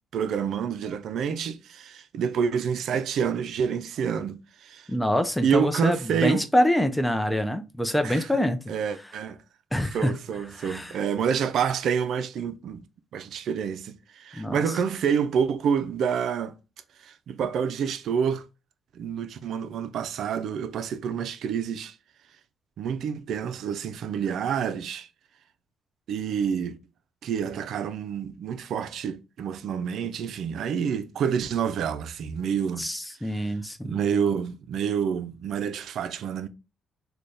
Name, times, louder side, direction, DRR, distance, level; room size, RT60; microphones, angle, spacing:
voice 1, 0.1-4.9 5.4-6.4 8.0-8.3 8.7-9.4 9.9-12.8 13.1-16.5 17.0-18.4 18.9-22.0 22.8-25.1 26.1-26.8 27.2-32.9 33.2-33.6 33.8-36.5, right 7 dB, 70° right, 0.4 m, -28 dB
voice 2, 4.9-8.6 9.7-10.2 10.6-10.9 14.3-14.6 32.8-34.0, equal, 5° left, 0.5 m, -25 dB
3.3 x 2.2 x 3.9 m
cardioid pair, 90°, 0 cm